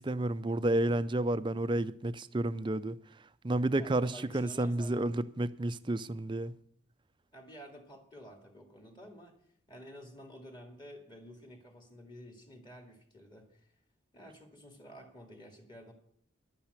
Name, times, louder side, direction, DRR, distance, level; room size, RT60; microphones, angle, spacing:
voice 1, 0.0-3.0 3.4-6.5, right 1 dB, 25° right, 0.4 m, -31 dB
voice 2, 3.8-5.1 7.3-9.4 9.7-13.7 14.1-15.9, equal, 20° left, 2.1 m, -51 dB
11.5 x 8.9 x 8.1 m
head